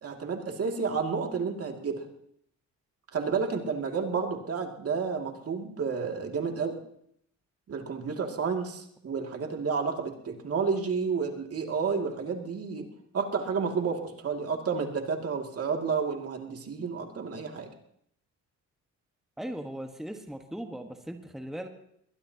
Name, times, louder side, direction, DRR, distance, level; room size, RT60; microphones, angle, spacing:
voice 1, 0.0-2.0 3.1-6.8 7.7-12.9 13.1-17.7, right 5 dB, 50° right, 2 dB, 2.4 m, -31 dB
voice 2, 19.4-21.7, right 1 dB, ahead, 4 dB, 1.4 m, -38 dB
21.0 x 21.0 x 2.9 m, 0.72 s
cardioid pair, 90°, 30 cm